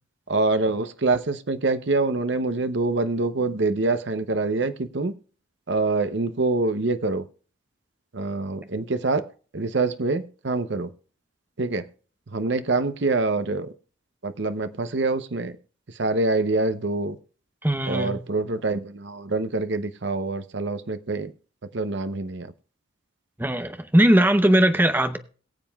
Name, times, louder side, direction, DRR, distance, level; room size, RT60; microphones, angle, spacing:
voice 1, 0.3-5.1 5.7-7.2 8.1-9.2 9.5-10.9 11.6-11.9 12.3-13.7 14.2-15.5 16.0-17.2 17.9-21.3 21.7-22.5, right 3 dB, 60° right, 0.7 m, -25 dB
voice 2, 17.6-18.2 23.4-25.2, right 1 dB, 10° right, 0.7 m, -19 dB
22.0 x 7.5 x 2.3 m
head